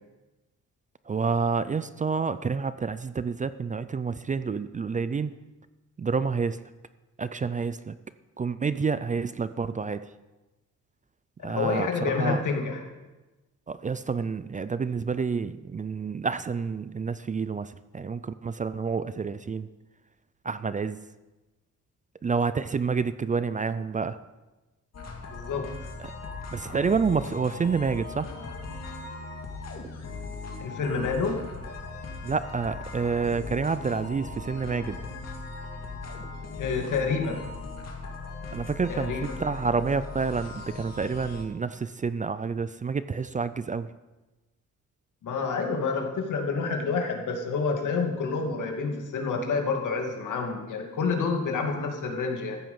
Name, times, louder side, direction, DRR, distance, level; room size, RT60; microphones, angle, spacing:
voice 1, 1.1-5.3 6.0-6.6 7.2-7.9 8.4-10.0 11.4-12.4 13.7-19.7 20.5-21.0 22.2-24.2 26.5-28.3 32.2-35.0 38.5-43.9, right 5 dB, 25° right, 14 dB, 0.4 m, -28 dB
voice 2, 11.4-12.8 25.3-25.6 30.6-31.4 36.6-37.4 38.9-39.4 45.2-52.6, left 4 dB, 75° left, 2 dB, 2.3 m, -28 dB
sound 1, 24.9-41.4, left 3 dB, 55° left, 2.3 m, -39 dB
14.0 x 8.9 x 5.5 m, 1.1 s
cardioid pair, 115°, 31 cm